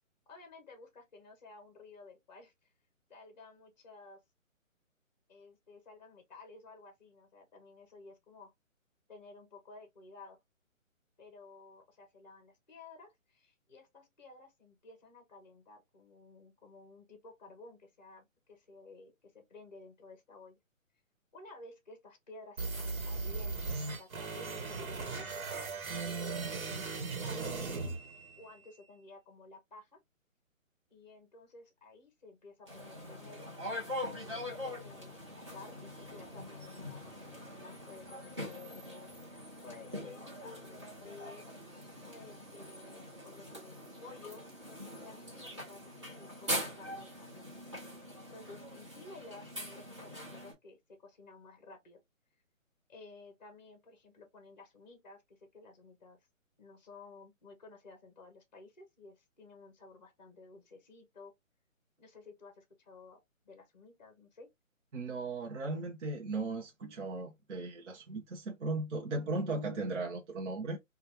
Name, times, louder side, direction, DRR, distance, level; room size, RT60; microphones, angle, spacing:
voice 1, 0.3-2.7 3.1-4.2 5.3-8.5 9.1-10.4 11.2-20.6 21.3-25.6 26.0-27.4 27.7-27.8 28.4-30.0 30.9-33.5 34.3-41.6 42.1-44.5 44.9-48.0 48.3-52.0 52.9-56.2 56.6-61.3 62.0-64.5, left 3 dB, 35° left, 0.6 m, -54 dB
sound 1, 22.6-28.6, right 3 dB, 80° right, 1.1 m, -38 dB
sound 2, 32.7-50.5, equal, 20° right, 0.8 m, -43 dB
voice 2, 64.9-70.8, right 3 dB, 60° right, 0.7 m, -37 dB
3.2 x 2.3 x 2.7 m
hypercardioid pair, 175°, 41 cm